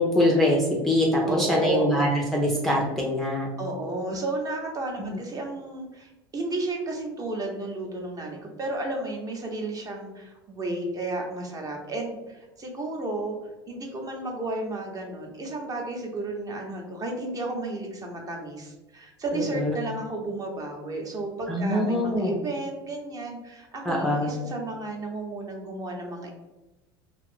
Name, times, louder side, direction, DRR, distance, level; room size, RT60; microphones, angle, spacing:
voice 1, 0.0-3.5 5.0-5.2 19.3-19.8 21.5-22.3 23.9-24.3, left 1 dB, ahead, -3 dB, 0.5 m, -24 dB
voice 2, 1.2-2.0 3.6-13.3 13.7-26.3, right 2 dB, 30° right, 1 dB, 0.8 m, -32 dB
2.7 x 2.4 x 3.5 m, 1.1 s
hypercardioid pair, 85°, 13 cm